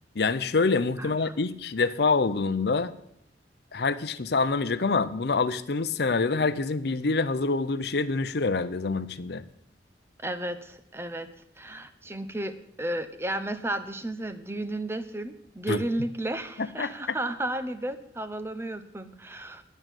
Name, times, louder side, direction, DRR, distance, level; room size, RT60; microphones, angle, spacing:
voice 1, 0.2-2.9 3.7-9.4 15.7-15.8 16.8-16.9, left 4 dB, 60° left, 12 dB, 0.6 m, -26 dB
voice 2, 1.0-1.3 10.2-11.3 11.6-19.6, right 1 dB, 15° right, 10 dB, 0.7 m, -33 dB
11.0 x 6.4 x 9.0 m, 0.73 s
head